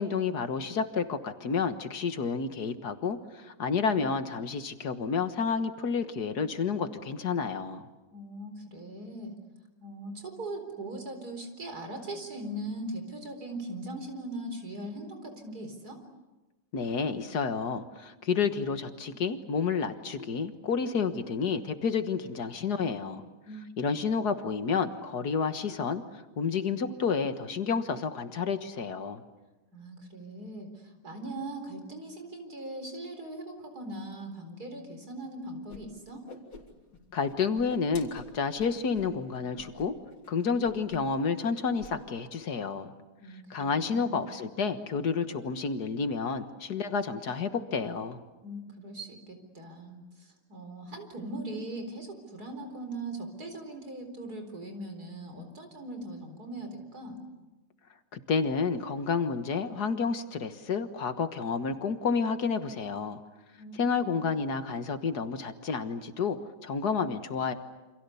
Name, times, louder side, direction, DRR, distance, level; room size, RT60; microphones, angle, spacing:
voice 1, 0.0-7.9 16.7-23.2 23.8-26.0 26.4-29.2 37.1-39.9 40.3-42.9 43.5-48.2 58.1-63.2 63.7-66.4 66.6-67.5, left 5 dB, 65° left, 9 dB, 1.9 m, -30 dB
voice 2, 8.1-9.3 9.8-16.0 23.5-23.6 29.7-36.2 43.2-44.2 48.4-57.2 63.6-64.2, right 1 dB, 60° right, 6 dB, 4.8 m, -40 dB
Whoosh swoosh swish, 35.7-35.8 36.1-37.0 37.3-39.1 39.5-39.9 40.1-40.3 40.6-41.1 41.4-41.9, left 3 dB, 85° left, 4.0 m, -47 dB
29.0 x 27.0 x 7.0 m, 1.1 s
omnidirectional pair, 1.9 m